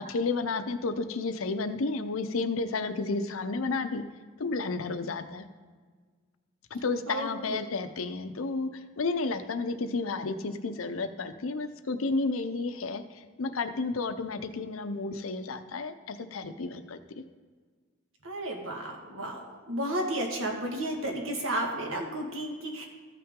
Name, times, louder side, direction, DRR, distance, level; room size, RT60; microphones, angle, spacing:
voice 1, 0.1-4.0 4.4-5.4 6.7-8.7 9.0-13.0 13.4-17.2, left 3 dB, 85° left, 10 dB, 0.6 m, -31 dB
voice 2, 18.2-22.8, right 1 dB, 80° right, 1 dB, 1.6 m, -32 dB
14.0 x 5.8 x 3.7 m, 1.5 s
head